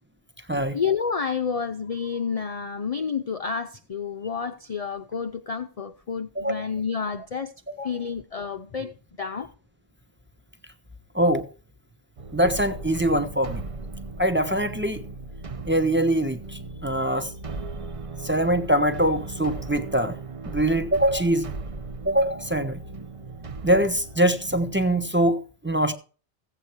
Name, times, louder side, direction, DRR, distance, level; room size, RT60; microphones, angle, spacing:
voice 1, 0.7-9.5, left 6 dB, 40° left, 0.6 m, -30 dB
voice 2, 11.1-11.5 12.3-13.6 14.2-15.0 15.7-17.3 18.2-20.2 20.4-21.5 22.0-22.8 23.6-25.9, right 1 dB, 10° right, 1.0 m, -23 dB
sound 1, 12.2-24.9, right 3 dB, 35° right, 0.7 m, -37 dB
15.5 x 8.1 x 4.6 m
omnidirectional pair, 1.2 m